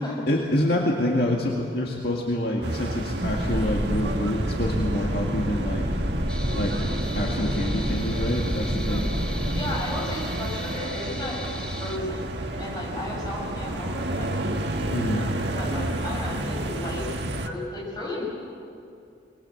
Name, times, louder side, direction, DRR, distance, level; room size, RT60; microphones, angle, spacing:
voice 1, 0.3-5.8 6.5-9.1 14.9-15.3, left 1 dB, 55° left, -1 dB, 2.0 m, -27 dB
sound 1, 2.6-17.5, right 1 dB, 65° right, 1.5 m, -31 dB
sound 2, 3.2-9.6, equal, 25° right, 5.4 m, -29 dB
sound 3, 6.3-12.0, left 1 dB, 5° left, 1.2 m, -40 dB
voice 2, 9.5-12.3 12.6-14.6 15.0-17.1 17.4-18.3, left 1 dB, 20° left, -4 dB, 6.7 m, -34 dB
23.5 x 20.5 x 7.9 m, 2.5 s
head